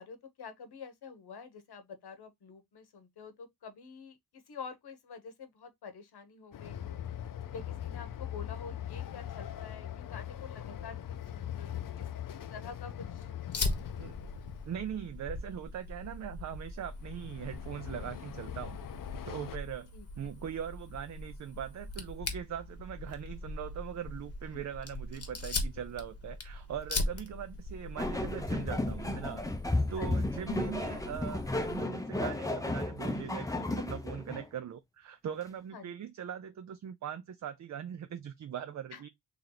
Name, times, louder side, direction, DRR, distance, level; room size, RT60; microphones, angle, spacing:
voice 1, 0.0-4.2 4.5-7.0 7.5-12.1 12.5-13.3 19.9-20.3 24.5-24.6 28.7-28.8 30.0-30.1 35.7-35.9 38.9-39.0, left 5 dB, 70° left, 1.0 m, -47 dB
Train, 6.5-15.0 16.8-19.6, left 10 dB, 55° left, 0.5 m, -41 dB
Fire, 13.5-31.8, left 2 dB, 35° left, 1.0 m, -40 dB
voice 2, 14.7-18.8 19.3-19.9 20.2-29.4 29.9-39.1, right 9 dB, 45° right, 0.4 m, -41 dB
sound 1, 28.0-34.5, left 2 dB, 10° left, 0.6 m, -33 dB
3.3 x 2.9 x 3.8 m
wide cardioid pair, 120°, 40 cm